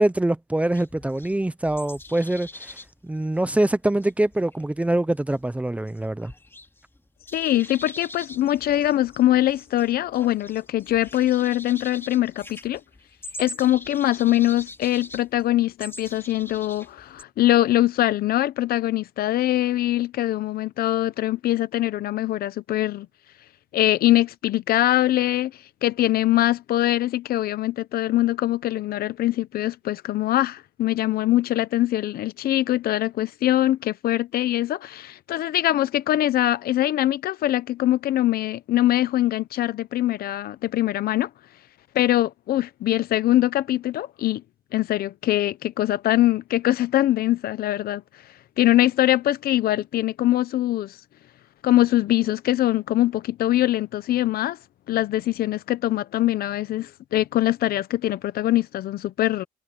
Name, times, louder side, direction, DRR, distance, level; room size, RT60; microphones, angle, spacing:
voice 1, 0.0-2.8 3.0-6.3, right 1 dB, 10° right, 0.8 m, -24 dB
sound 1, 0.7-7.0 7.2-17.2, left 2 dB, 15° left, 3.2 m, -43 dB
voice 2, 7.3-12.8 13.4-23.1 23.7-25.5 25.8-41.3 41.9-44.4 44.7-48.0 48.6-51.0 51.6-54.6 54.9-59.4, left 14 dB, 65° left, 0.9 m, -22 dB
cardioid pair, 110°, 17 cm